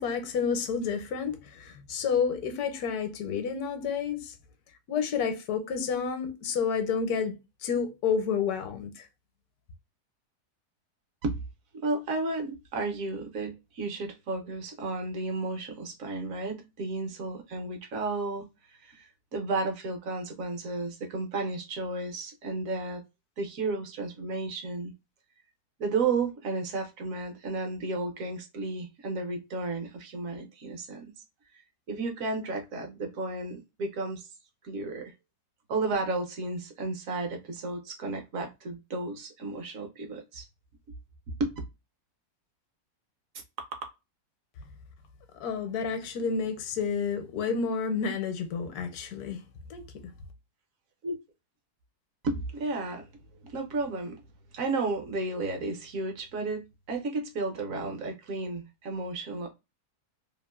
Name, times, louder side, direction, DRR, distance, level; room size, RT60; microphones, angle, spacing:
voice 1, 0.0-4.3 4.9-7.4 7.6-9.1 45.4-49.4 49.7-49.8, left 6 dB, 75° left, 1.1 m, -30 dB
voice 2, 11.7-18.4 18.8-23.0 23.4-24.9 25.8-31.1 31.9-34.3 34.6-35.1 35.7-40.5 41.3-41.5 51.0-51.2 52.2-53.1 53.4-54.2 54.5-59.5, right 3 dB, 65° right, 1.0 m, -33 dB
2.9 x 2.5 x 2.2 m
omnidirectional pair, 1.7 m